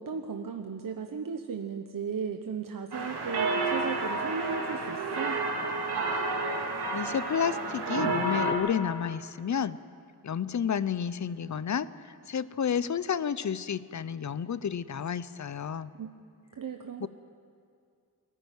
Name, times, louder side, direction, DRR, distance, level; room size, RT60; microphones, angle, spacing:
voice 1, 0.0-5.4 16.0-16.1 16.5-17.1, right 6 dB, 60° right, 4 dB, 1.1 m, -36 dB
sound 1, 2.9-8.5, right 2 dB, 85° right, 2.9 m, -30 dB
voice 2, 6.9-9.8 10.2-11.9 12.3-15.9 17.0-17.1, left 7 dB, 50° left, 16 dB, 0.7 m, -31 dB
22.5 x 15.0 x 9.3 m, 2.3 s
wide cardioid pair, 110°, 38 cm